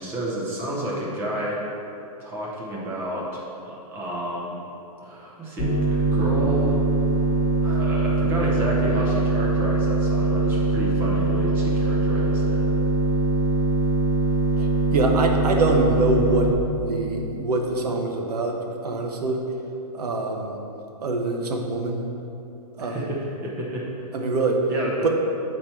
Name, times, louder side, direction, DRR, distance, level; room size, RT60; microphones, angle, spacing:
voice 1, 0.0-1.6 2.2-4.6 5.0-5.8 6.1-6.8 7.6-12.6 22.8-24.2 24.7-25.1, right 1 dB, 10° right, -4 dB, 0.7 m, -30 dB
sound 1, 5.6-16.5, right 2 dB, 5° left, 1.1 m, -22 dB
voice 2, 14.6-19.4 19.9-20.5 21.0-22.1 22.8-23.1 24.1-24.6 25.0-25.1, right 2 dB, 80° right, 2 dB, 1.1 m, -24 dB
8.3 x 4.4 x 4.4 m, 2.8 s
hypercardioid pair, 180°, 20 cm